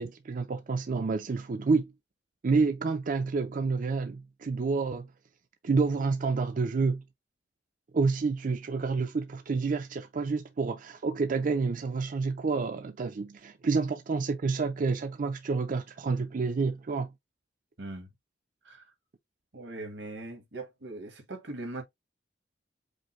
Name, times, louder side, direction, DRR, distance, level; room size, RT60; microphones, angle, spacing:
voice 1, 0.0-1.9 2.4-5.1 5.6-7.0 7.9-17.1, right 4 dB, 50° right, 0.4 m, -29 dB
voice 2, 17.8-18.1 18.6-18.8 19.5-21.8, right 2 dB, 90° right, 1.6 m, -40 dB
5.2 x 2.1 x 4.4 m
head